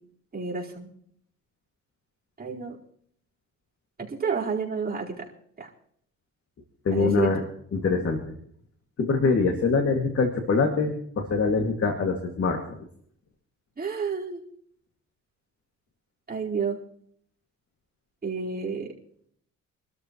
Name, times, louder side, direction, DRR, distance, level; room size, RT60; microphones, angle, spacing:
voice 1, 0.3-0.9 2.4-2.8 4.0-5.3 5.6-5.7 6.9-7.3 13.8-14.4 16.3-16.8 18.2-18.9, right 5 dB, 30° right, -4 dB, 4.5 m, -30 dB
voice 2, 6.8-7.4 7.7-8.4 9.0-12.6, left 4 dB, 50° left, 4 dB, 2.3 m, -24 dB
26.0 x 13.0 x 3.1 m, 0.64 s
cardioid pair, 90°, 30 cm